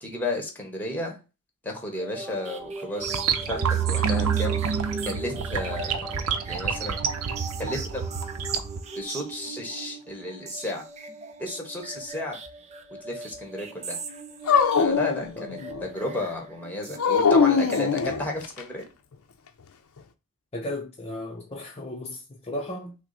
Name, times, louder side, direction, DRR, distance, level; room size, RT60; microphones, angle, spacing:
voice 1, 0.0-1.2 1.6-4.6 5.0-6.1 6.4-7.0 7.6-8.1 8.9-10.8 11.4-12.4 13.0-14.0 14.8-18.8, left 2 dB, 10° left, 1.2 m, -33 dB
sound 1, 1.9-18.4, right 3 dB, 30° right, 0.5 m, -39 dB
sound 2, 3.0-8.8, right 7 dB, 85° right, 0.6 m, -28 dB
Dog, 14.5-15.9 17.0-18.6, left 5 dB, 80° left, 0.6 m, -22 dB
voice 2, 20.5-23.0, left 1 dB, 30° left, 0.6 m, -35 dB
6.0 x 2.1 x 4.1 m
head